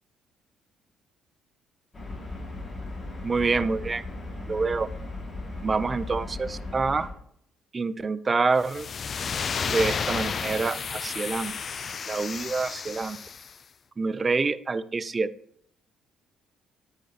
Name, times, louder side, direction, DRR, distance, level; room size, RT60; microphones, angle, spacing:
sound 1, 1.9-7.1, left 2 dB, 30° left, 2.1 m, -37 dB
voice 1, 3.2-4.0 4.5-4.9 5.6-7.1 7.7-8.9 9.6-11.5 12.1-13.2 14.0-15.3, right 4 dB, 30° right, 16 dB, 0.4 m, -26 dB
sound 2, 8.6-13.5, left 6 dB, 45° left, 0.3 m, -32 dB
9.5 x 4.9 x 2.8 m, 0.69 s
supercardioid pair, 75°, 0 cm